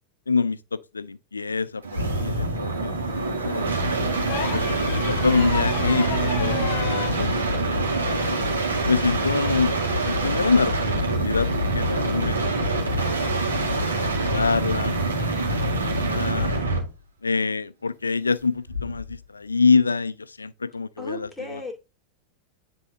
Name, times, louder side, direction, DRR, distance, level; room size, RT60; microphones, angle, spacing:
voice 1, 0.3-3.7 4.5-8.4 8.9-11.5 11.7-13.5 14.0-14.9 15.3-15.5 15.9-16.5 17.2-21.6, left 4 dB, 75° left, 0.4 m, -26 dB
sound 1, 1.8-16.9 18.7-19.1, right 1 dB, 75° right, 1.9 m, -25 dB
Bowed string instrument, 3.1-7.5, right 15 dB, 45° right, 1.3 m, -34 dB
sound 2, 4.2-7.2 8.9-9.0, left 9 dB, 50° left, 0.7 m, -33 dB
voice 2, 21.0-21.7, left 2 dB, 5° left, 2.1 m, -35 dB
9.7 x 3.5 x 2.7 m
figure-of-eight pair, 90°, 0 cm